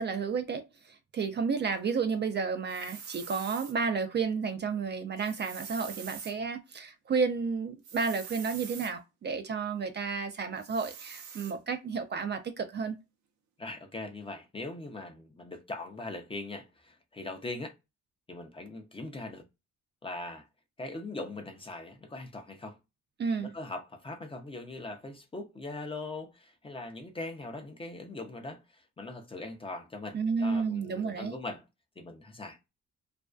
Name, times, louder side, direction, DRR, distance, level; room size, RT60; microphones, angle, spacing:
voice 1, 0.0-13.0 23.2-23.5 30.1-31.3, right 5 dB, 35° right, 0.4 m, -31 dB
sound 1, 2.7-3.7 5.2-6.3 7.8-8.9 10.6-11.5, right 7 dB, 70° right, 0.7 m, -45 dB
voice 2, 13.6-17.7 18.3-19.5 20.0-20.5 20.8-22.8 23.4-31.6 32.0-32.6, left 2 dB, 20° left, 0.5 m, -41 dB
2.5 x 2.2 x 2.2 m
cardioid pair, 90°, 30 cm